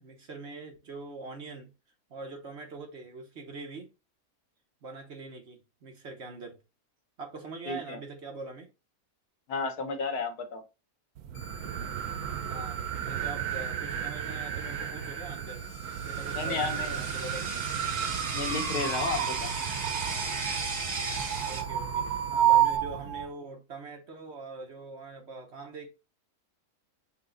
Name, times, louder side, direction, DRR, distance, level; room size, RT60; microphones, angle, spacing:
voice 1, 0.0-1.7 2.1-3.9 4.8-6.6 7.2-8.7 12.5-15.6 16.0-17.7 21.4-22.0 22.3-25.9, right 3 dB, 50° right, 1.2 m, -43 dB
voice 2, 7.7-8.0 9.5-10.6 16.3-17.0 18.3-19.5, left 4 dB, 85° left, 1.5 m, -32 dB
sound 1, 11.2-23.3, right 10 dB, 80° right, 1.2 m, -31 dB
sound 2, 11.3-22.8, left 3 dB, 45° left, 0.8 m, -52 dB
sound 3, 15.7-21.6, right 4 dB, 35° right, 0.8 m, -36 dB
5.9 x 2.2 x 3.8 m
omnidirectional pair, 1.6 m